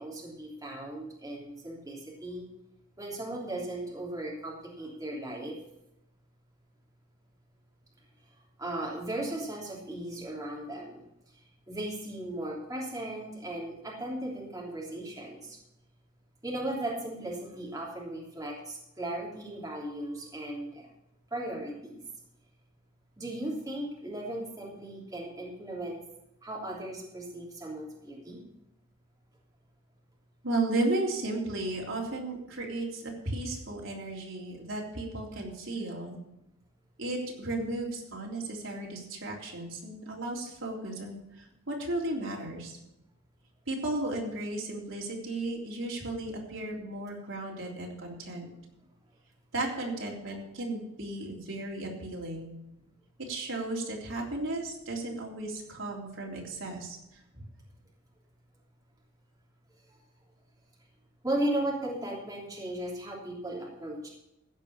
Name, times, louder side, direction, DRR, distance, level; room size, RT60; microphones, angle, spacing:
voice 1, 0.0-2.5 3.0-5.6 8.6-11.0 11.7-15.6 16.4-20.9 21.3-22.0 23.2-26.0 26.4-28.4 61.2-64.1, right 1 dB, 15° right, -3 dB, 3.1 m, -36 dB
voice 2, 30.4-36.2 37.0-42.8 43.7-48.5 49.5-52.6 53.2-57.4, right 2 dB, 65° right, -2 dB, 3.5 m, -34 dB
15.5 x 5.3 x 8.5 m, 0.87 s
head